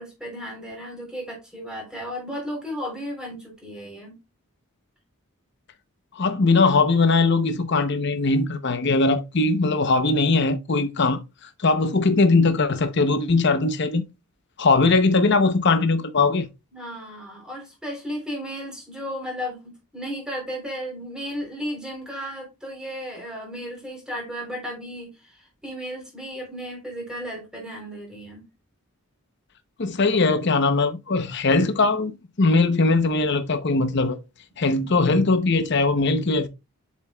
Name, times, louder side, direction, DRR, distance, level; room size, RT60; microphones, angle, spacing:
voice 1, 0.0-4.2 16.7-28.4, equal, 5° right, 3.5 m, -34 dB
voice 2, 6.2-11.2 11.6-14.0 14.6-16.5 29.8-32.1 32.4-34.2 34.6-36.5, left 3 dB, 50° left, 0.7 m, -20 dB
7.4 x 7.3 x 2.3 m
head